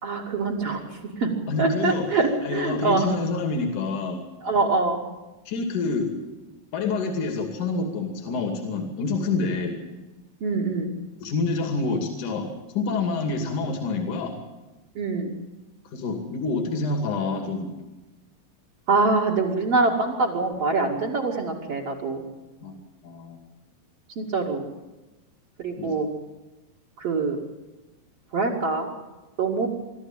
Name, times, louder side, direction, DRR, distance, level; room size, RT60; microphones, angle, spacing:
voice 1, 0.0-1.3 1.6-3.1 4.4-5.0 10.4-10.9 14.9-15.3 18.9-22.2 24.2-24.7 25.6-26.1 27.0-27.4 28.3-28.9 29.4-29.7, right 3 dB, 50° right, 2 dB, 3.3 m, -24 dB
voice 2, 1.5-2.1 2.4-4.2 5.5-6.1 6.7-9.8 11.2-14.3 15.9-17.7 22.6-23.4 25.8-25.9, left 3 dB, 65° left, 4 dB, 4.0 m, -27 dB
24.5 x 13.5 x 9.1 m, 1.1 s
omnidirectional pair, 3.9 m